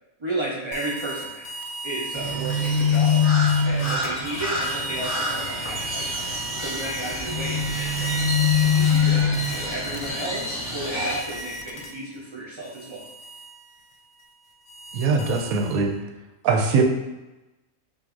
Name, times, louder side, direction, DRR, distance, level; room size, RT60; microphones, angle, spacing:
voice 1, 0.2-1.5 1.8-3.2 3.6-8.2 8.7-13.0, right 2 dB, 35° right, -4 dB, 0.4 m, -33 dB
sound 1, 0.7-12.2 12.6-16.0, right 2 dB, 75° left, 0.9 m, -35 dB
Crow, 2.1-11.2, left 4 dB, 20° left, 1.0 m, -24 dB
voice 2, 14.9-15.9 16.4-16.8, right 4 dB, 90° right, 3 dB, 1.0 m, -21 dB
5.9 x 2.6 x 2.5 m, 1.0 s
omnidirectional pair, 1.4 m